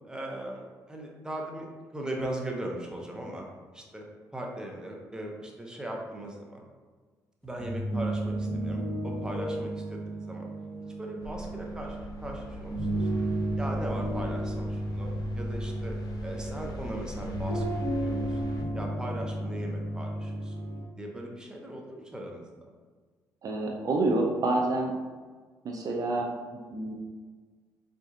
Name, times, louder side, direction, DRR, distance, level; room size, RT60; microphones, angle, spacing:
voice 1, 0.0-3.4 3.7-4.0 4.3-6.6 7.4-10.5 11.0-13.2 13.6-16.0 16.2-18.4 18.7-20.6 21.0-22.7, right 1 dB, 10° right, 0 dB, 0.7 m, -39 dB
sound 1, 7.4-20.8, right 1 dB, 10° left, 1.4 m, -33 dB
sound 2, 11.2-18.6, left 2 dB, 55° left, 0.5 m, -42 dB
voice 2, 23.4-24.9 25.6-26.3 26.7-26.9, right 2 dB, 50° right, 0 dB, 0.4 m, -27 dB
4.1 x 2.5 x 2.4 m, 1.4 s
supercardioid pair, 65°, 8 cm